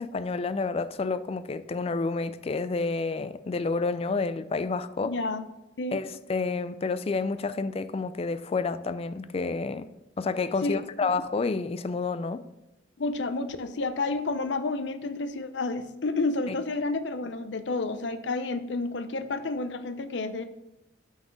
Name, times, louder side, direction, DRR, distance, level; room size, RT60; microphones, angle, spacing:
voice 1, 0.0-5.2 5.9-9.9 10.2-12.4 16.5-16.6, left 4 dB, 30° left, 0.3 m, -29 dB
voice 2, 5.0-5.4 5.8-6.0 10.6-11.1 13.0-20.4, left 3 dB, 65° left, 0.6 m, -30 dB
6.2 x 6.1 x 5.1 m
head